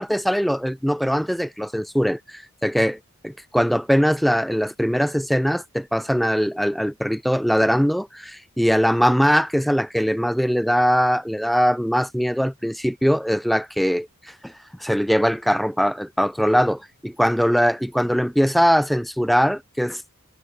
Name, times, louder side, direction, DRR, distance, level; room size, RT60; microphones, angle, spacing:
voice 1, 0.0-3.0 3.2-14.1 14.4-14.5 14.8-20.0, equal, ahead, 0.7 m, -21 dB
head